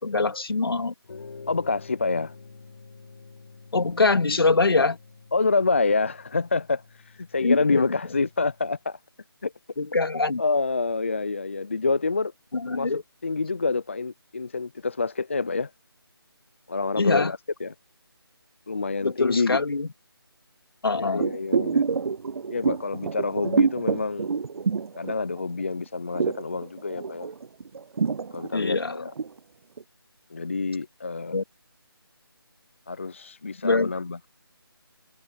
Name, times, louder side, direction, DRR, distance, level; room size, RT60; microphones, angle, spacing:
voice 1, 0.0-0.9 3.7-5.0 7.4-7.8 9.8-10.4 12.5-13.0 17.0-17.3 19.0-19.9 20.8-21.3 28.5-28.9 31.3-31.4 33.6-33.9, left 3 dB, 70° left, 2.3 m, -23 dB
sound 1, 1.0-8.8, left 4 dB, 50° left, 5.4 m, -48 dB
voice 2, 1.5-2.3 5.3-9.0 9.4-9.5 10.4-12.3 12.7-15.7 16.7-17.7 18.7-19.6 21.0-21.8 22.5-24.3 25.0-27.3 28.3-29.1 30.3-31.4 32.9-34.2, left 4 dB, 30° left, 0.4 m, -27 dB
sound 2, 21.2-25.6 25.9-29.4 29.8-29.9, right 5 dB, 80° right, 0.4 m, -27 dB
figure-of-eight pair, 170°, 13 cm